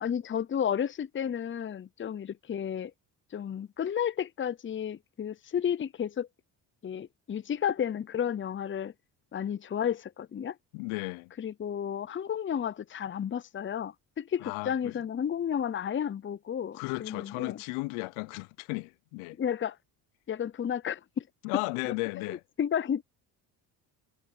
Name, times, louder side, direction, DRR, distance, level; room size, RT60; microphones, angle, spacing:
voice 1, 0.0-2.9 3.3-6.3 6.8-8.9 9.3-10.5 11.4-17.6 19.4-19.8 20.3-21.2 22.3-23.0, left 8 dB, 25° left, 0.7 m, -32 dB
voice 2, 10.7-11.3 14.4-15.0 16.7-19.4 21.4-22.4, left 26 dB, 80° left, 0.8 m, -35 dB
supercardioid pair, 70°, 49 cm